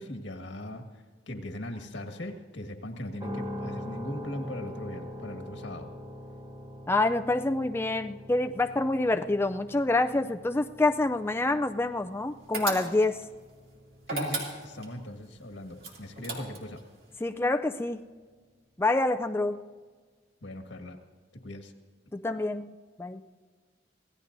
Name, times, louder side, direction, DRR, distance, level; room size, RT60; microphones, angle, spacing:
voice 1, 0.0-5.9 14.1-16.8 20.4-21.0 21.3-21.7, left 1 dB, 85° left, 4 dB, 1.7 m, -39 dB
sound 1, 3.2-17.2, left 1 dB, 25° right, 1.6 m, -44 dB
voice 2, 6.9-13.2 17.2-18.0 18.8-19.6 22.1-23.2, left 2 dB, 15° left, 7 dB, 0.4 m, -27 dB
sound 2, 12.5-13.2 14.0-14.9 15.8-16.8, right 2 dB, 60° right, 2.7 m, -34 dB
25.5 x 17.0 x 2.7 m, 1.5 s
head